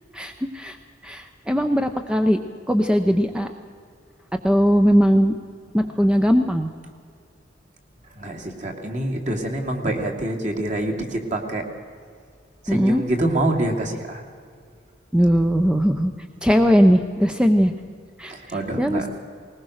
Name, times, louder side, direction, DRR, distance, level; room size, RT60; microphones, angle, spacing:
voice 1, 0.1-0.8 1.0-2.4 2.7-3.5 4.4-5.3 5.7-6.7 12.7-13.0 15.1-16.1 16.4-17.7 18.2-19.1, equal, 5° right, 6 dB, 0.7 m, -19 dB
voice 2, 8.1-11.6 12.6-14.2 18.3-19.1, right 1 dB, 40° right, 2 dB, 2.6 m, -26 dB
20.0 x 20.0 x 6.5 m, 2.2 s
head